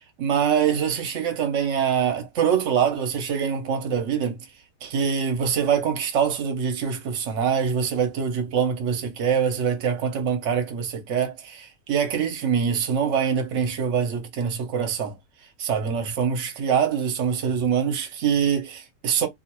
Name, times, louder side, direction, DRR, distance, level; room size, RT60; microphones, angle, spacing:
voice 1, 0.2-4.4 4.8-15.2 15.6-19.3, right 7 dB, 55° right, 1.0 m, -24 dB
2.7 x 2.4 x 2.9 m
omnidirectional pair, 1.8 m